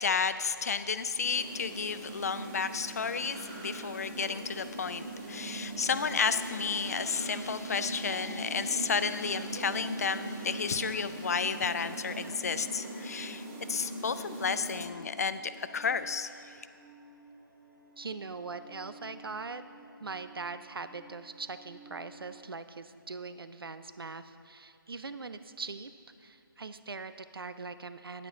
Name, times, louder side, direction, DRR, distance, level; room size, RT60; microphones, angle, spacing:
voice 1, 0.0-16.3, left 5 dB, 45° left, 13 dB, 0.3 m, -32 dB
sound 1, 1.1-14.9, right 2 dB, 30° right, 1.5 m, -41 dB
sound 2, 3.1-22.4, right 3 dB, ahead, 1.5 m, -56 dB
voice 2, 18.0-19.6 20.0-25.9 26.2-28.3, right 4 dB, 80° right, 12 dB, 0.5 m, -41 dB
9.3 x 9.0 x 3.8 m, 2.6 s
figure-of-eight pair, 150°, 12 cm